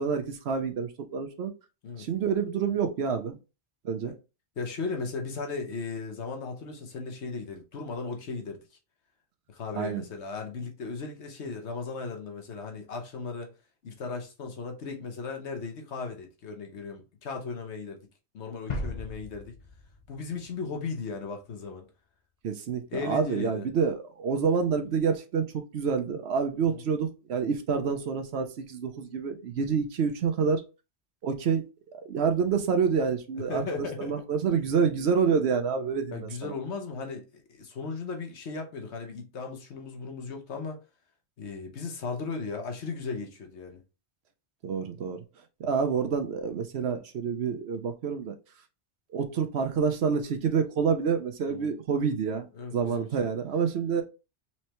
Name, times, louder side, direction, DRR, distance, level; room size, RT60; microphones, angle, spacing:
voice 1, 0.0-1.5 2.0-3.4 3.8-4.1 9.7-10.0 22.4-30.6 31.2-31.7 32.0-36.5 44.6-45.2 45.6-48.3 49.1-52.5 52.7-54.0, right 6 dB, 70° right, 0.9 m, -28 dB
voice 2, 4.6-8.6 9.5-13.5 13.8-18.0 18.3-19.6 20.1-21.9 22.9-23.7 26.7-26.8 33.5-34.2 36.1-40.8 41.4-43.8 51.5-51.7 52.5-53.3, left 4 dB, 80° left, 1.2 m, -36 dB
sound 1, 18.7-21.4, left 2 dB, 45° left, 0.8 m, -38 dB
4.4 x 3.2 x 2.9 m
omnidirectional pair, 1.1 m